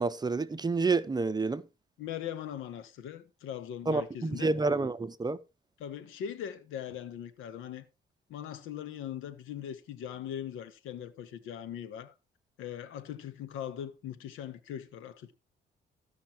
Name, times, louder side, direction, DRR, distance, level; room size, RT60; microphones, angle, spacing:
voice 1, 0.0-1.6 3.9-5.4, right 3 dB, 20° right, 0.7 m, -29 dB
voice 2, 2.0-4.5 5.8-7.9 8.3-12.1 12.6-15.3, left 10 dB, 90° left, 1.2 m, -40 dB
14.5 x 5.8 x 4.4 m
cardioid pair, 90°, 20 cm